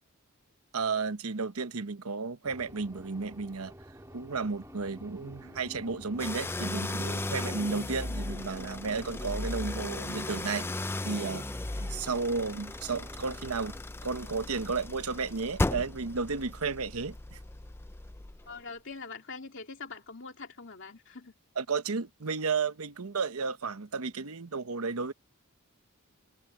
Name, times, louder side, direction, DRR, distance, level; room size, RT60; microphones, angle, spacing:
voice 1, 0.7-3.7 4.1-10.7 11.0-11.5 11.8-13.7 14.0-17.4 21.6-25.1, right 4 dB, 85° right, 1.0 m, -33 dB
sound 1, 2.4-13.8, right 1 dB, 15° right, 3.0 m, -50 dB
sound 2, 4.0-10.8, equal, 35° left, 5.9 m, -50 dB
sound 3, 6.2-18.6, left 2 dB, 10° left, 0.3 m, -36 dB
voice 2, 18.5-21.3, left 4 dB, 60° left, 2.6 m, -44 dB
head